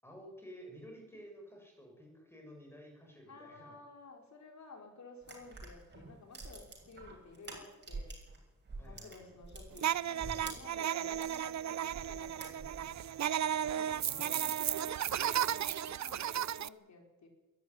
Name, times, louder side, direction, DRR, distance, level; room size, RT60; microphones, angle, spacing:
voice 1, 0.0-3.8 8.8-9.3 13.9-14.6, equal, 10° left, 1 dB, 7.0 m, -53 dB
voice 2, 3.3-8.1 8.8-13.0 13.7-17.3, left 3 dB, 65° left, 3 dB, 4.8 m, -54 dB
sound 1, 5.2-8.4 8.6-11.4 11.9-13.0, right 3 dB, 35° right, 6.8 m, -47 dB
sound 2, 9.8-16.7, right 10 dB, 65° right, 0.6 m, -34 dB
22.0 x 13.5 x 9.8 m, 1.1 s
wide cardioid pair, 140°, 30 cm